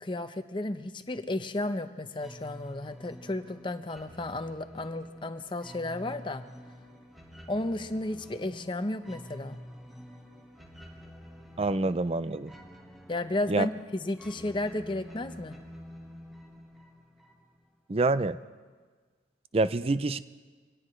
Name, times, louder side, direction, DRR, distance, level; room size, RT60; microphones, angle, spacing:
voice 1, 0.0-6.4 7.5-9.6 13.1-15.6, left 2 dB, 25° left, 9 dB, 0.8 m, -33 dB
sound 1, 2.2-17.7, equal, ahead, 1.6 m, -48 dB
voice 2, 11.6-12.5 13.5-13.7 17.9-18.4 19.5-20.2, right 2 dB, 35° right, 14 dB, 0.5 m, -26 dB
25.0 x 17.5 x 3.2 m, 1.5 s
head